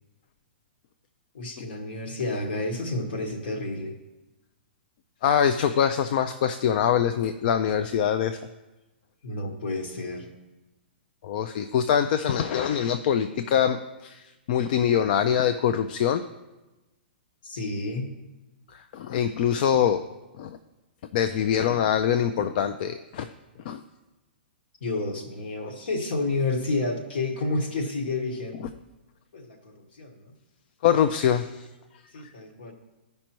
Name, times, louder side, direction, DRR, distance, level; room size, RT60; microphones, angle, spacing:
voice 1, 1.3-3.9 9.2-10.3 17.4-18.1 24.8-28.6 29.3-30.3 32.1-32.7, left 2 dB, 70° left, 4 dB, 1.4 m, -30 dB
voice 2, 5.2-8.4 11.2-14.2 14.5-16.2 18.9-20.0 20.4-20.6 21.1-23.3 23.7-23.8 30.8-31.7, left 8 dB, 50° left, 9 dB, 0.4 m, -24 dB
12.5 x 5.3 x 3.0 m, 1.1 s
hypercardioid pair, 130°, 6 cm